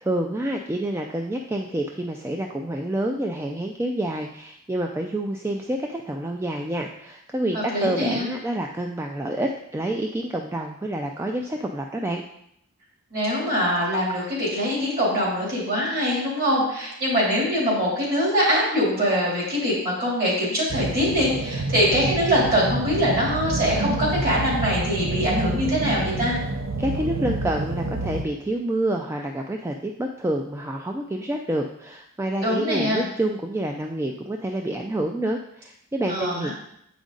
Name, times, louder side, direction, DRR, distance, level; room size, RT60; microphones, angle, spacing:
voice 1, 0.0-12.2 26.8-36.5, right 1 dB, 10° right, 2 dB, 0.3 m, -28 dB
voice 2, 7.5-8.3 13.1-26.3 32.4-33.0 36.1-36.5, equal, 45° right, -4 dB, 2.9 m, -23 dB
sound 1, 20.7-28.2, right 2 dB, 65° right, 0.5 m, -28 dB
8.1 x 5.0 x 3.9 m, 0.74 s
head